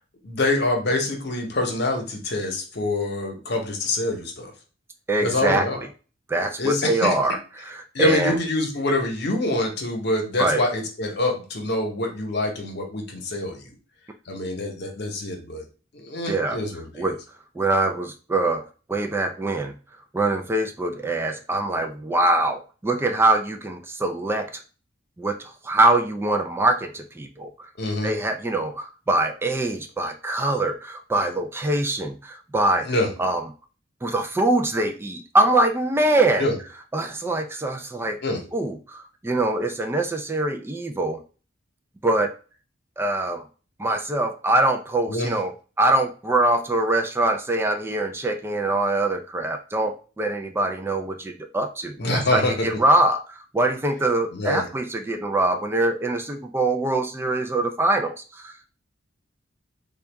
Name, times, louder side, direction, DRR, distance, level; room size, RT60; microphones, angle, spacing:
voice 1, 0.2-4.5 5.2-5.9 6.6-7.1 7.9-13.7 14.3-15.7 15.9-17.1 27.8-28.1 32.8-33.1 36.4-36.5 38.2-38.4 45.1-45.3 52.0-52.7 54.3-54.7, left 2 dB, 60° left, 2 dB, 0.9 m, -25 dB
voice 2, 5.1-5.7 6.3-8.4 10.4-10.6 16.3-16.6 17.0-17.2 17.6-19.7 20.1-24.6 25.2-27.7 28.0-33.4 34.0-36.5 36.9-38.2 38.5-41.2 42.0-42.3 43.0-43.4 43.8-58.7, right 2 dB, 15° right, 5 dB, 0.3 m, -23 dB
3.9 x 2.3 x 3.4 m, 0.36 s
head